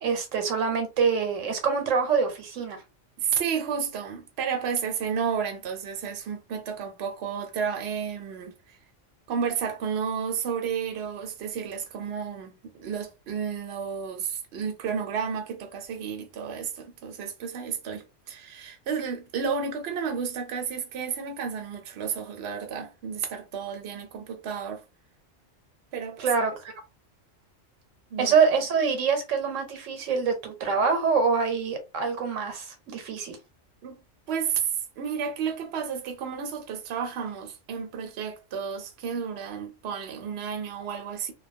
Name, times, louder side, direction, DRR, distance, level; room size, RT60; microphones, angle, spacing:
voice 1, 0.0-2.8 26.2-26.7 28.2-33.4, right 5 dB, 80° right, 1.0 m, -25 dB
voice 2, 3.2-8.8 9.3-24.8 25.9-26.3 28.1-28.3 33.8-34.0 34.3-41.3, right 7 dB, 65° right, 0.8 m, -32 dB
2.3 x 2.2 x 2.5 m
omnidirectional pair, 1.3 m